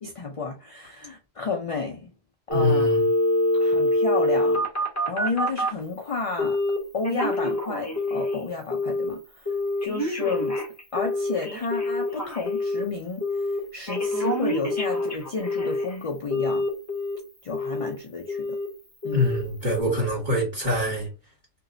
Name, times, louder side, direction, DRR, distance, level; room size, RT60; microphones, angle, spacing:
voice 1, 0.0-2.1 2.5-3.0 3.6-4.6 5.1-6.6 6.9-9.5 9.8-10.6 10.9-16.7 17.4-18.6 19.0-19.3, left 4 dB, 45° left, 0.5 m, -31 dB
Telephone, 2.5-5.8 6.4-6.8 7.0-8.4 8.7-9.1 9.5-12.8 13.2-13.6 13.9-15.9 16.3-17.2 17.5-17.9 18.3-18.7 19.0-19.4 19.8-19.9, left 1 dB, 15° left, 1.1 m, -25 dB
voice 2, 2.5-3.1 19.1-21.1, left 1 dB, 40° right, 2.0 m, -25 dB
2.9 x 2.7 x 2.6 m
omnidirectional pair, 1.1 m